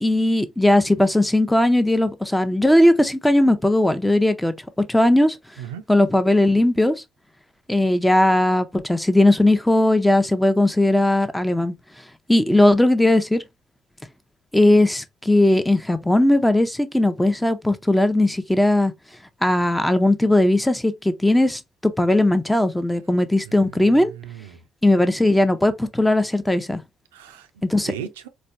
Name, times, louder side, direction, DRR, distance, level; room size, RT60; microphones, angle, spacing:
voice 1, 0.0-4.5 4.9-5.4 5.9-7.0 7.7-11.7 12.3-13.4 14.5-18.9 19.4-24.1 24.8-26.8 27.6-27.9, left 1 dB, 5° left, 0.6 m, -18 dB
voice 2, 23.4-24.6 27.1-28.3, right 10 dB, 80° right, 0.4 m, -37 dB
4.2 x 2.2 x 2.6 m
figure-of-eight pair, 50°, 0 cm